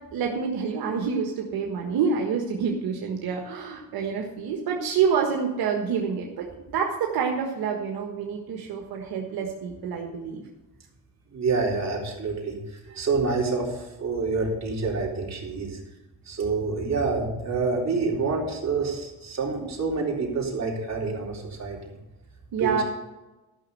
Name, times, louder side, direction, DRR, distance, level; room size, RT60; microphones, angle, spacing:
voice 1, 0.1-6.5 6.7-10.4 22.5-22.8, right 6 dB, 80° right, 1 dB, 1.5 m, -27 dB
voice 2, 11.3-15.8 16.2-21.8 22.6-22.8, right 4 dB, 45° right, -2 dB, 3.8 m, -27 dB
13.0 x 6.2 x 6.5 m, 1.1 s
cardioid pair, 90°, 36 cm